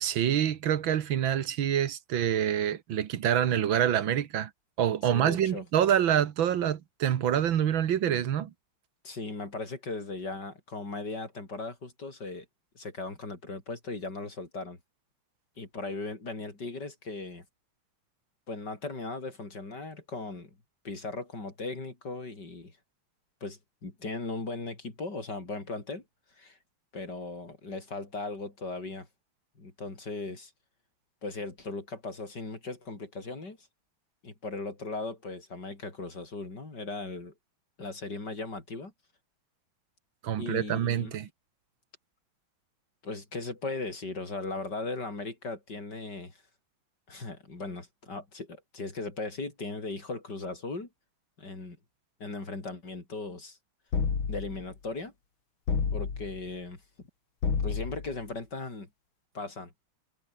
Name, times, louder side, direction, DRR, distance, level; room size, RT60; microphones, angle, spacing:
voice 1, 0.0-4.5 4.8-8.5 40.2-41.3, right 10 dB, 70° right, 2.0 m, -26 dB
voice 2, 5.1-5.6 9.0-12.5 12.8-14.8 15.6-17.5 18.5-20.6 20.8-22.8 23.4-26.0 26.4-26.6 26.9-29.1 29.6-30.5 31.2-33.6 34.2-37.3 37.8-38.9 40.4-41.1 43.0-46.4 47.1-50.9 51.4-51.8 52.2-53.6 54.3-55.1 55.9-56.8 57.6-58.9 59.3-59.7, left 3 dB, 55° left, 5.5 m, -38 dB
sound 1, 53.9-54.7 55.7-56.4 57.4-58.2, left 5 dB, 75° left, 3.5 m, -30 dB
omnidirectional pair, 2.2 m